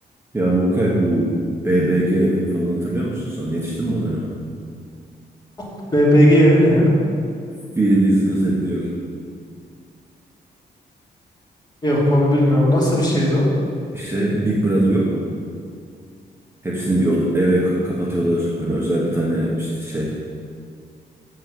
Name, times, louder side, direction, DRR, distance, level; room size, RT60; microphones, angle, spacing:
voice 1, 0.3-1.3 1.6-4.4 7.5-8.9 13.9-15.3 16.6-20.2, right 1 dB, 15° right, -5 dB, 1.3 m, -20 dB
voice 2, 5.9-6.9 11.8-13.4, equal, 25° left, -6 dB, 2.8 m, -15 dB
7.7 x 7.5 x 7.7 m, 2.3 s
wide cardioid pair, 175°, 17 cm